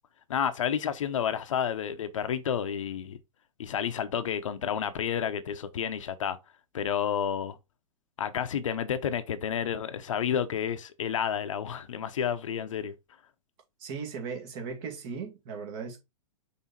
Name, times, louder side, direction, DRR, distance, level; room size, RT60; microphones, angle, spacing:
voice 1, 0.3-3.2 3.6-6.4 6.7-7.6 8.2-12.9, left 8 dB, 60° left, 0.9 m, -30 dB
voice 2, 13.8-16.0, right 5 dB, 40° right, 2.0 m, -37 dB
5.9 x 4.0 x 4.1 m
figure-of-eight pair, 105°, 19 cm